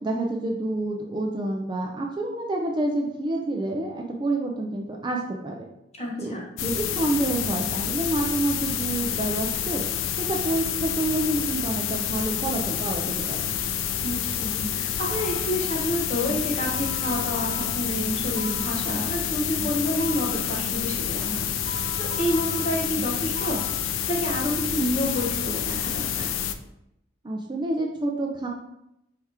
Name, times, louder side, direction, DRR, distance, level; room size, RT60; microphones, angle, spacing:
voice 1, 0.0-5.6 6.2-6.3 6.6-9.8 10.2-13.5 27.2-28.5, right 2 dB, 25° right, 1 dB, 0.4 m, -28 dB
voice 2, 6.0-6.4 14.0-21.5 22.0-26.3, equal, 35° left, -3 dB, 1.0 m, -29 dB
sound 1, 6.6-26.5, left 9 dB, 85° left, 0.3 m, -28 dB
sound 2, 14.6-15.4 16.3-18.8 19.6-20.4 21.3-23.8, equal, 50° left, 1.1 m, -38 dB
4.7 x 2.9 x 3.3 m, 0.83 s
head